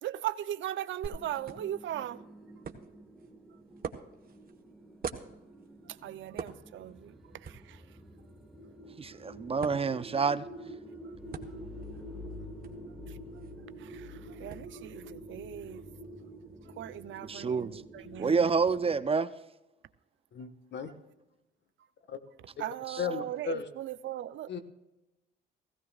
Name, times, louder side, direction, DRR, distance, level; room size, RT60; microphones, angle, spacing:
voice 1, 0.0-2.2 5.9-7.1 7.4-7.8 11.0-11.1 13.1-13.2 13.8-15.9 16.8-18.5 22.6-24.6, right 12 dB, 75° right, 0.6 m, -39 dB
sound 1, 1.0-19.0, equal, ahead, 1.7 m, -48 dB
sound 2, 1.0-18.7, right 6 dB, 50° right, 1.3 m, -48 dB
voice 2, 9.0-10.4 17.2-17.8 18.2-19.3 22.9-23.0, right 5 dB, 30° right, 0.6 m, -28 dB
voice 3, 20.3-20.9 22.1-22.2 23.0-23.7 24.5-24.6, left 6 dB, 60° left, 1.5 m, -35 dB
16.5 x 16.5 x 2.4 m
cardioid pair, 90°, 20 cm